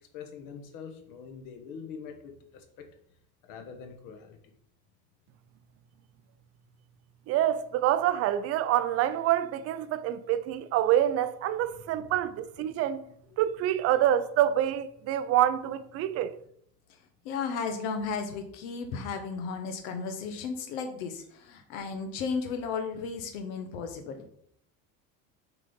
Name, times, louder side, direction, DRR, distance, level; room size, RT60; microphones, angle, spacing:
voice 1, 0.1-2.9 3.4-4.5 11.7-12.1, left 6 dB, 55° left, 1.5 m, -44 dB
voice 2, 7.3-13.0 13.4-16.4, right 11 dB, 40° right, 0.5 m, -26 dB
voice 3, 17.2-24.3, left 5 dB, 75° left, 1.0 m, -34 dB
7.2 x 4.1 x 5.2 m
cardioid pair, 155°, 39 cm